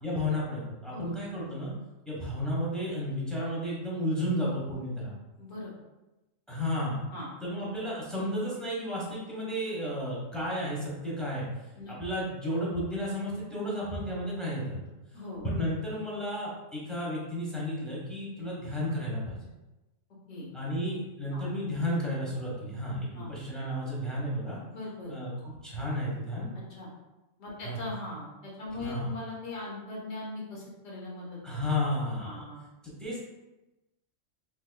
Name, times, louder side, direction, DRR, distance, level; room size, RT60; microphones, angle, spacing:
voice 1, 0.0-1.7 2.0-5.1 6.5-7.0 7.4-11.5 11.9-14.9 15.4-19.4 20.5-24.6 25.1-26.5 27.6-27.8 28.8-29.1 31.4-32.5 32.8-33.2, equal, ahead, -6 dB, 1.0 m, -32 dB
voice 2, 5.4-5.7 7.1-7.3 11.8-11.9 15.1-15.4 20.3-20.5 21.3-21.4 23.2-23.3 24.7-25.1 26.7-26.9 27.4-31.4 32.2-32.6, left 2 dB, 80° left, -5 dB, 1.4 m, -40 dB
4.0 x 3.1 x 2.2 m, 1.0 s
omnidirectional pair, 1.3 m